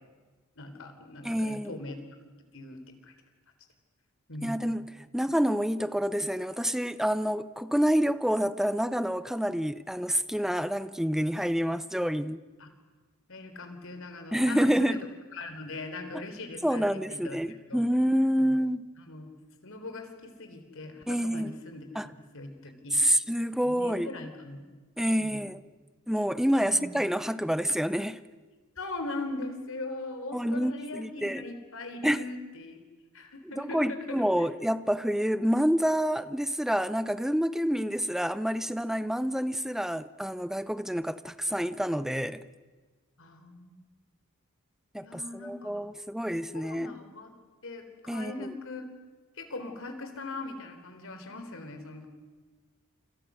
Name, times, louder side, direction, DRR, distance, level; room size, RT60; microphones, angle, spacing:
voice 1, 0.6-2.0 2.5-3.1 4.3-4.6 12.6-12.7 13.3-15.0 15.3-16.8 17.1-17.4 17.7-17.8 18.4-18.5 19.0-19.3 19.6-23.0 23.6-24.6 25.2-25.4 26.6-27.1 28.8-32.8 33.1-34.5 43.2-43.8 45.0-45.9 46.5-47.3 47.6-48.9 49.4-52.1, left 2 dB, 60° left, 3.9 m, -40 dB
voice 2, 1.2-1.8 4.4-4.9 5.1-12.4 14.3-15.0 16.1-16.2 16.6-18.8 21.1-21.5 21.9-22.1 22.9-24.1 25.0-25.6 26.1-28.2 30.3-31.4 32.0-32.3 33.6-42.4 44.9-46.9 48.1-48.5, equal, ahead, 0.7 m, -28 dB
28.5 x 27.5 x 6.4 m
head